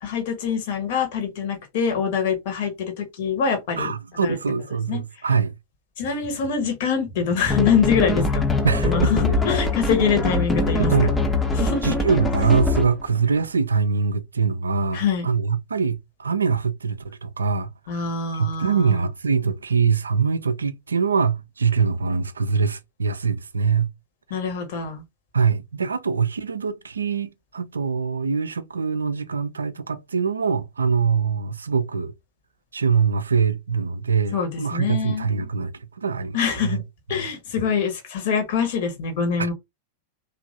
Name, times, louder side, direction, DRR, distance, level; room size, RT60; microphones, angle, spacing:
voice 1, 0.0-3.9 4.2-4.4 4.9-5.0 6.0-8.5 8.9-10.9 11.5-11.9 14.9-15.3 17.9-18.9 24.3-25.0 34.3-35.3 36.3-36.8 37.1-39.5, left 6 dB, 50° left, 1.1 m, -24 dB
voice 2, 3.8-5.5 8.6-9.1 10.8-11.2 11.8-17.7 18.3-23.9 25.3-32.1 32.7-35.7 36.0-36.8 37.1-37.2 39.4-39.5, right 5 dB, 75° right, 0.3 m, -23 dB
sound 1, 7.5-13.0, left 2 dB, 15° left, 0.6 m, -23 dB
3.0 x 2.5 x 2.5 m
figure-of-eight pair, 90°, 0 cm